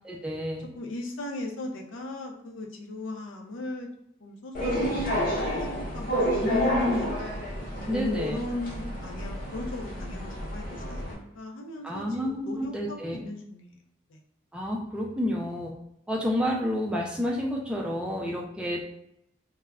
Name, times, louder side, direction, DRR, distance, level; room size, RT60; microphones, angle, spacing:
voice 1, 0.0-0.6 6.5-7.0 7.9-8.4 11.8-13.2 14.5-15.7 16.1-18.8, left 1 dB, 5° right, -2 dB, 0.3 m, -29 dB
voice 2, 0.8-3.9 4.2-5.0 5.3-6.2 6.5-7.1 7.9-13.8 14.1-14.2, left 2 dB, 85° left, 1 dB, 0.5 m, -38 dB
sound 1, 4.5-11.1, equal, 45° left, 0.8 m, -30 dB
2.3 x 2.0 x 3.4 m, 0.78 s
head